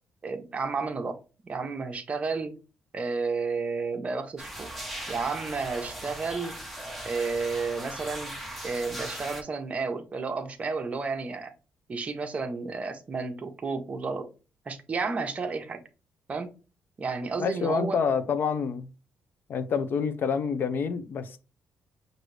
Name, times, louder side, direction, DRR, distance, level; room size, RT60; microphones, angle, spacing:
voice 1, 0.2-1.2 1.5-2.5 2.9-4.7 5.1-6.6 7.0-8.3 8.6-11.5 11.9-14.3 14.7-15.8 16.3-16.5 17.0-18.0, right 4 dB, 30° right, 0.7 m, -31 dB
sound 1, 4.4-9.4, right 1 dB, ahead, 0.8 m, -39 dB
voice 2, 17.4-18.9 19.5-21.4, left 6 dB, 50° left, 0.5 m, -27 dB
6.2 x 2.6 x 3.2 m
cardioid pair, 140°, 4 cm